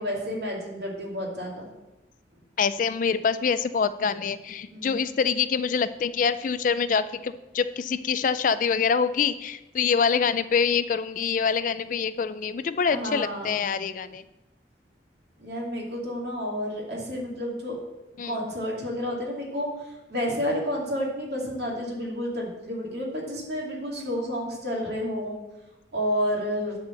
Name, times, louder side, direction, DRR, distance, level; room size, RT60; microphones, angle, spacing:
voice 1, 0.0-1.7 4.7-5.1 12.9-13.6 15.4-17.8 18.2-25.4 25.9-26.8, equal, 60° right, -3 dB, 2.6 m, -30 dB
voice 2, 2.6-14.2 18.2-18.4, left 6 dB, 45° left, 13 dB, 0.3 m, -25 dB
9.6 x 4.3 x 7.5 m, 1.0 s
head